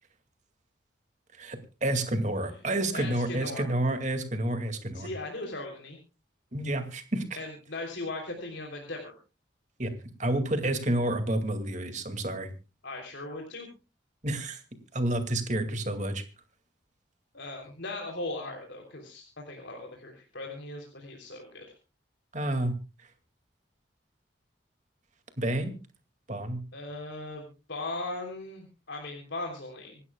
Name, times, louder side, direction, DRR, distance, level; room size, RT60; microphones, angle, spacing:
voice 1, 1.4-5.1 6.5-7.3 9.8-9.9 10.2-12.5 14.2-14.6 14.9-16.2 22.3-22.8 25.4-25.7 26.3-26.6, right 1 dB, 40° right, 7 dB, 2.2 m, -29 dB
voice 2, 2.9-3.7 4.9-6.0 7.4-9.2 12.8-13.7 17.3-21.6 26.7-30.0, left 2 dB, 70° left, 2 dB, 3.3 m, -38 dB
26.5 x 12.5 x 2.3 m, 0.33 s
head